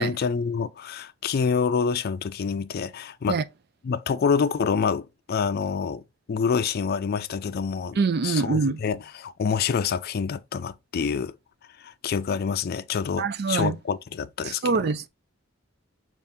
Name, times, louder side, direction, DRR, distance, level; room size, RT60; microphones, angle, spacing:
voice 1, 0.0-3.4 3.8-6.0 6.3-8.0 8.2-11.4 11.8-14.9, left 6 dB, 50° left, 0.4 m, -27 dB
voice 2, 8.0-8.8 13.2-13.8 14.4-15.1, right 4 dB, 55° right, 0.4 m, -24 dB
5.5 x 2.5 x 3.5 m
head